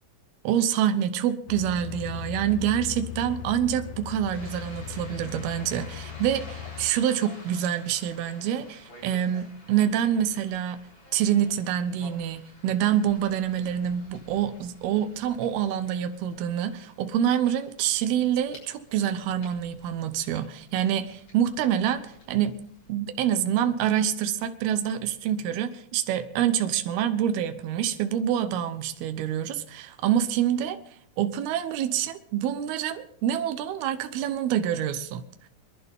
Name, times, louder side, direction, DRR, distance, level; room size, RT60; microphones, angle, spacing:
voice 1, 0.4-10.8 11.1-22.6 22.9-30.8 31.2-35.2, right 10 dB, 85° right, 9 dB, 3.0 m, -26 dB
sound 1, 1.5-6.9, left 11 dB, 70° left, 2.1 m, -38 dB
sound 2, 4.3-22.9, left 1 dB, 40° left, 7.6 m, -51 dB
26.5 x 11.5 x 3.6 m, 0.68 s
omnidirectional pair, 4.4 m